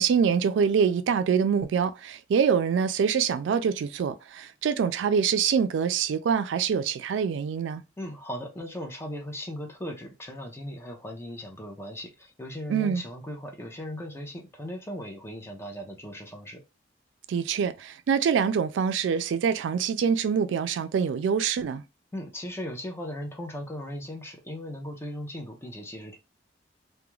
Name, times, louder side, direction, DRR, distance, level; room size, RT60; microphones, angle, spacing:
voice 1, 0.0-7.8 12.7-13.0 17.3-21.8, right 6 dB, 90° right, 0.3 m, -25 dB
voice 2, 8.0-16.6 22.1-26.2, equal, 15° left, 0.5 m, -38 dB
2.3 x 2.1 x 3.0 m
head